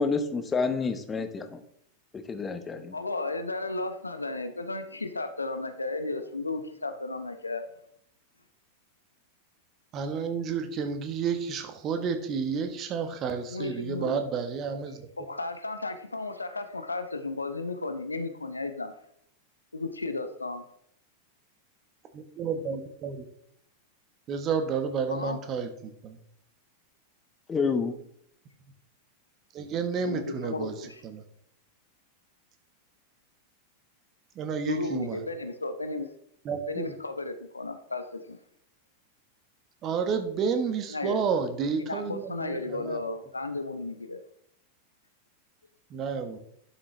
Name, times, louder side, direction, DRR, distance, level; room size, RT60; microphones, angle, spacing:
voice 1, 0.0-1.6 2.1-3.0 27.5-27.9, left 4 dB, 20° left, 9 dB, 1.0 m, -28 dB
voice 2, 2.9-7.7 13.5-14.2 15.2-18.9 19.7-20.6 25.1-25.4 30.0-31.0 34.7-36.1 36.7-38.4 40.9-41.2 41.8-44.2, left 3 dB, 80° left, 9 dB, 0.8 m, -34 dB
voice 3, 9.9-15.0 22.4-23.2 24.3-26.2 29.5-31.2 34.3-35.2 36.4-36.9 39.8-43.0 45.9-46.4, right 6 dB, 30° right, 7 dB, 1.3 m, -31 dB
11.0 x 6.3 x 3.3 m, 0.69 s
figure-of-eight pair, 90°, 0 cm